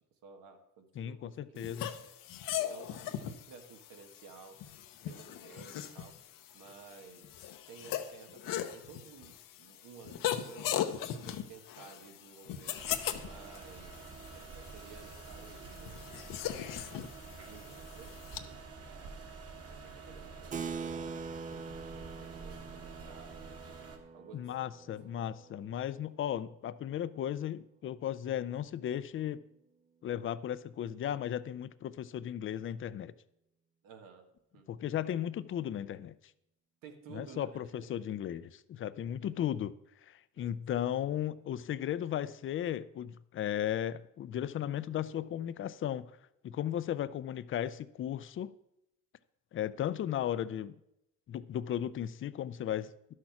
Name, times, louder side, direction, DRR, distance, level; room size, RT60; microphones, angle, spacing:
voice 1, 0.2-1.8 2.6-4.6 5.1-6.2 6.5-10.7 11.1-12.8 13.2-16.8 17.4-19.2 19.7-23.8 24.1-24.7 33.8-34.3 34.5-34.7 36.8-37.9 40.4-40.9, right 6 dB, 90° right, 1.4 m, -54 dB
voice 2, 1.0-1.9 24.3-29.4 30.0-33.1 34.7-36.2 37.1-39.7 40.1-46.1 46.4-48.5 49.5-50.8 51.3-52.9, left 10 dB, 40° left, 0.4 m, -35 dB
sound 1, 1.6-18.4, left 11 dB, 80° left, 0.8 m, -39 dB
sound 2, 12.8-24.0, right 4 dB, 45° right, 1.8 m, -48 dB
Keyboard (musical), 20.5-26.5, right 5 dB, 25° right, 0.3 m, -44 dB
11.5 x 6.4 x 5.8 m
cardioid pair, 140°, 33 cm